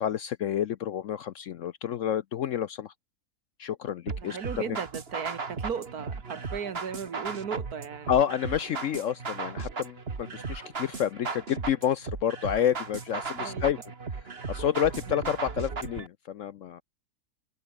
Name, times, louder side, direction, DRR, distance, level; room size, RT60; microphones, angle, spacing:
voice 1, 0.0-2.9 3.6-4.4 4.7-4.8 8.1-13.8 14.5-16.8, left 9 dB, 65° left, 0.8 m, -29 dB
sound 1, 4.1-16.1, right 4 dB, 40° right, 1.9 m, -36 dB
voice 2, 4.2-8.1 13.4-13.6, right 7 dB, 65° right, 2.0 m, -36 dB
omnidirectional pair, 1.7 m